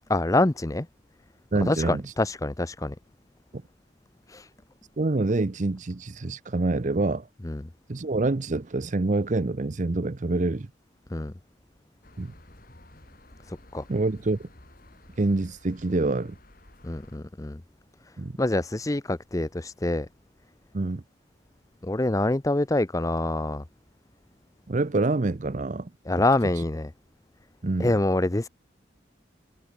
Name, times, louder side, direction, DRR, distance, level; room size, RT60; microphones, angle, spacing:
voice 1, 0.1-0.9 1.5-3.0 4.3-4.5 7.4-7.6 11.1-11.3 13.5-13.8 16.8-17.6 18.4-20.1 21.8-23.6 26.1-26.9 27.8-28.5, left 2 dB, 20° left, 0.6 m, -26 dB
voice 2, 1.5-2.1 5.0-7.3 7.9-10.7 12.2-12.3 13.9-14.5 15.2-16.3 18.2-18.4 20.7-21.0 24.7-25.9 26.6-26.7 27.6-27.9, right 2 dB, 40° right, 0.6 m, -26 dB
sound 1, 12.0-17.2, left 1 dB, 50° left, 4.7 m, -53 dB
head